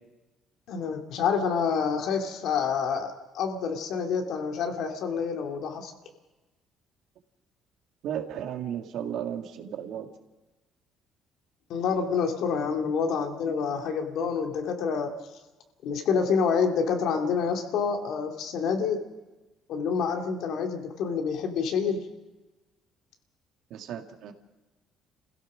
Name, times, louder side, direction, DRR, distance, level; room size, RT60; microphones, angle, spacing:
voice 1, 0.7-5.9 11.7-15.2 15.8-19.0 19.7-22.1, left 6 dB, 70° left, 3 dB, 2.3 m, -27 dB
voice 2, 8.0-10.1 12.6-12.8 23.7-24.3, right 9 dB, 75° right, 5 dB, 1.9 m, -34 dB
27.0 x 16.0 x 6.3 m, 1.1 s
cardioid pair, 100°, 0 cm